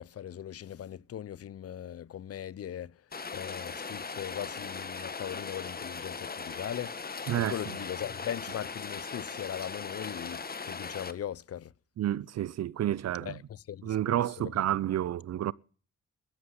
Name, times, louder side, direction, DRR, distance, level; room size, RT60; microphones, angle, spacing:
voice 1, 0.0-3.0 3.3-11.7 13.3-14.5, left 10 dB, 50° left, 0.6 m, -39 dB
Rain, 3.1-11.1, left 4 dB, 30° left, 1.4 m, -39 dB
voice 2, 12.0-13.4 13.8-15.5, right 12 dB, 60° right, 0.6 m, -30 dB
13.5 x 8.5 x 9.7 m
supercardioid pair, 65°, 30 cm